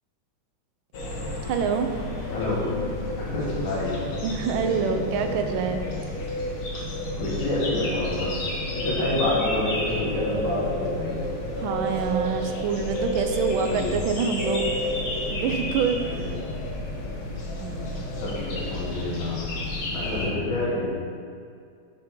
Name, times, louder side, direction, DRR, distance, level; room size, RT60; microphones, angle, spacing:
sound 1, 0.9-20.3, left 1 dB, 55° left, 1.3 m, -30 dB
voice 1, 1.5-1.9 4.2-5.8 11.6-14.7 15.3-16.2 17.6-18.0, right 6 dB, 80° right, 5 dB, 1.4 m, -26 dB
voice 2, 2.3-2.7 3.2-4.0 7.2-8.4 8.7-11.2 13.6-13.9 16.0-16.3 18.2-20.9, left 2 dB, 75° left, -6 dB, 2.2 m, -28 dB
5.4 x 5.1 x 4.5 m, 2.3 s
omnidirectional pair, 2.2 m